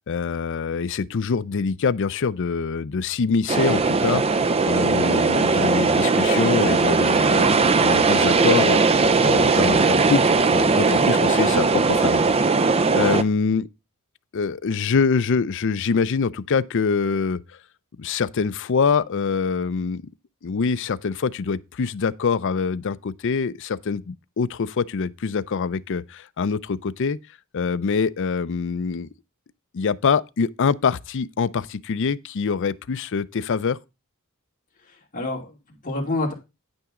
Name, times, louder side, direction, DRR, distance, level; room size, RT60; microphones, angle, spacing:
voice 1, 0.1-8.8 9.2-10.2 10.5-12.2 13.0-13.7 14.3-17.4 18.0-20.0 20.4-27.2 27.5-29.1 29.7-33.8, left 5 dB, 60° left, 0.5 m, -24 dB
sound 1, 3.5-13.2, right 4 dB, 25° right, 0.5 m, -19 dB
voice 2, 34.9-36.3, left 2 dB, 40° left, 2.7 m, -28 dB
9.2 x 8.8 x 3.7 m
head